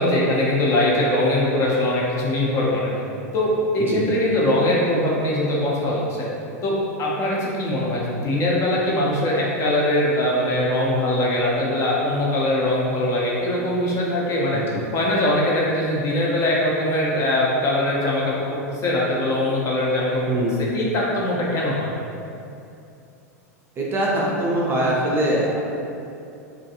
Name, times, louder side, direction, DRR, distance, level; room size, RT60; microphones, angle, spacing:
voice 1, 0.0-2.9 3.3-6.3 6.6-14.6 14.9-21.9, left 1 dB, 35° left, -4 dB, 0.6 m, -22 dB
voice 2, 20.3-20.6 23.8-25.6, right 1 dB, 25° right, -4 dB, 0.4 m, -22 dB
2.4 x 2.2 x 2.7 m, 2.6 s
hypercardioid pair, 100°, 9 cm